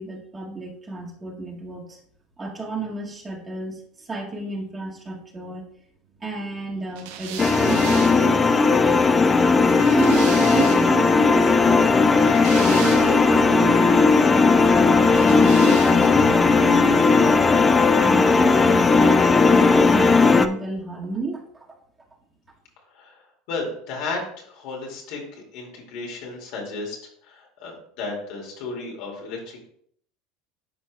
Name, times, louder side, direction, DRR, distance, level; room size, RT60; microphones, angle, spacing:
voice 1, 0.0-2.0 2.4-5.6 6.2-8.8 9.9-11.9 12.5-17.6 18.0-19.1 19.5-21.7, right 3 dB, 20° right, -2 dB, 1.8 m, -31 dB
sound 1, 6.9-11.0 12.0-13.4 15.1-16.3, right 9 dB, 75° right, 0.7 m, -37 dB
sound 2, 7.4-20.5, left 4 dB, 25° left, 0.5 m, -17 dB
voice 2, 23.5-27.0 27.2-29.7, left 3 dB, 65° left, -1 dB, 2.3 m, -33 dB
11.0 x 4.5 x 2.3 m, 0.64 s
hypercardioid pair, 95°, 0 cm